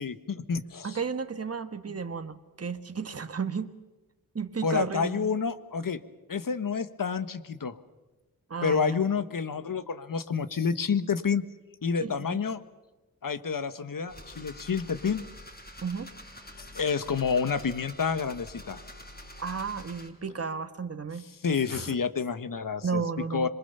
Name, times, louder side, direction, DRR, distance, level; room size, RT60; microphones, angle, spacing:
voice 1, 0.0-1.0 4.6-6.0 6.3-7.8 8.6-11.4 11.8-12.6 13.2-15.2 16.6-18.8 21.4-23.0 23.3-23.5, left 6 dB, 60° left, 12 dB, 1.4 m, -29 dB
voice 2, 0.8-3.7 4.3-5.3 8.5-9.0 12.0-12.4 15.8-16.1 19.4-21.2 21.7-21.9 22.8-23.5, right 5 dB, 40° right, 9 dB, 1.4 m, -33 dB
sound 1, 14.1-20.1, left 1 dB, 25° left, 5.3 m, -46 dB
26.5 x 22.5 x 6.9 m, 1.1 s
cardioid pair, 65°, 37 cm